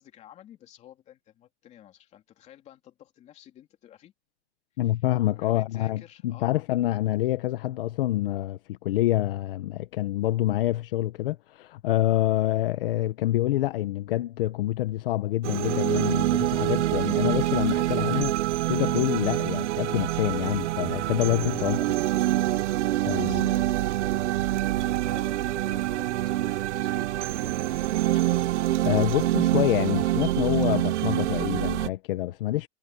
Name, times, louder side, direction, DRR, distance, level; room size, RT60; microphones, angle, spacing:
voice 1, 0.0-4.1 4.8-5.0 5.3-6.7 21.6-21.7 22.2-22.3 23.2-28.5, left 11 dB, 20° left, 3.1 m, -51 dB
voice 2, 4.8-18.4 18.7-21.8 23.1-23.4 28.8-32.7, left 15 dB, 55° left, 1.0 m, -26 dB
sound 1, 15.4-31.9, right 15 dB, 85° right, 0.6 m, -26 dB
supercardioid pair, 175°, 34 cm